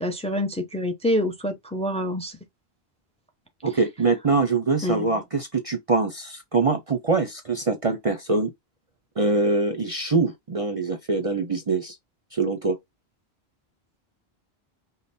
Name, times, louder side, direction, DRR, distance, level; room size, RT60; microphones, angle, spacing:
voice 1, 0.0-2.4 4.8-5.0, left 1 dB, 5° left, 0.6 m, -26 dB
voice 2, 3.6-8.5 9.2-11.9 12.3-12.8, right 3 dB, 40° right, 0.6 m, -24 dB
5.3 x 2.2 x 4.1 m
omnidirectional pair, 1.1 m